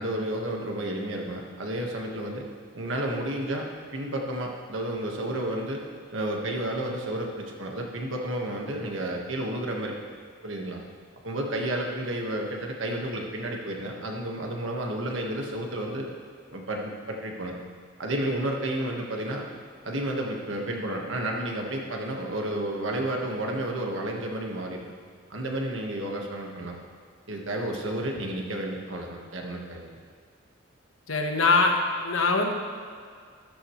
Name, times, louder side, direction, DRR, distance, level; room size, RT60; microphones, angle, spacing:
voice 1, 0.0-2.5 2.7-3.7 3.9-5.8 6.1-9.9 10.4-10.8 11.2-16.1 16.5-17.6 18.0-19.4 19.8-24.9 25.3-26.8 27.3-29.9, right 1 dB, 75° right, 0 dB, 1.5 m, -31 dB
voice 2, 31.1-31.8 32.0-32.5, left 3 dB, 85° left, 3 dB, 1.3 m, -22 dB
13.5 x 11.5 x 3.2 m, 2.1 s
head